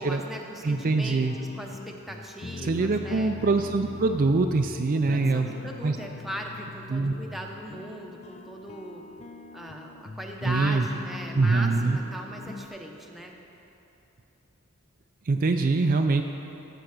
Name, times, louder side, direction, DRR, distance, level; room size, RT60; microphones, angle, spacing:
voice 1, 0.0-3.3 4.9-9.0 9.5-13.3, equal, ahead, 0 dB, 0.9 m, -38 dB
voice 2, 0.6-1.4 2.6-5.5 5.8-6.0 6.9-7.1 10.4-10.9 11.3-12.0 15.3-16.2, right 3 dB, 40° right, 5 dB, 0.4 m, -24 dB
sound 1, 0.7-12.7, left 3 dB, 30° left, 0.4 m, -41 dB
15.0 x 5.7 x 6.5 m, 2.9 s
head